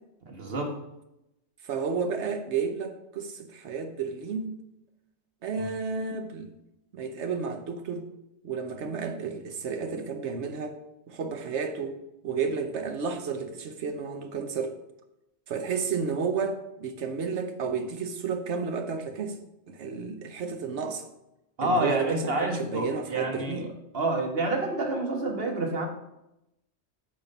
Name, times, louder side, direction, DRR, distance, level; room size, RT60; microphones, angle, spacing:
voice 1, 0.3-0.7 5.5-5.7 21.6-23.7 23.9-25.9, right 2 dB, 55° right, 3 dB, 1.4 m, -28 dB
voice 2, 1.6-4.6 5.4-6.5 6.9-8.1 8.4-10.7 11.1-12.0 12.2-14.8 15.5-19.4 19.7-21.0 21.6-23.7, right 5 dB, 75° right, 7 dB, 1.1 m, -32 dB
8.9 x 3.8 x 5.4 m, 0.87 s
omnidirectional pair, 1.2 m